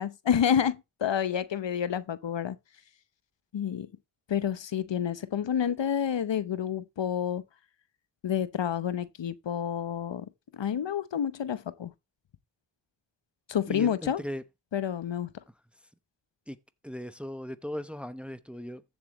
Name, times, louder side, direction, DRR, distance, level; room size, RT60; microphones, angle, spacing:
voice 1, 0.0-2.6 3.5-3.9 4.3-7.4 8.2-10.3 10.5-11.9 13.5-14.2 14.7-15.3, left 8 dB, 65° left, 0.9 m, -29 dB
voice 2, 13.7-14.4 16.5-16.6 16.8-18.8, equal, ahead, 0.9 m, -38 dB
14.5 x 7.4 x 3.1 m
cardioid pair, 60°, 48 cm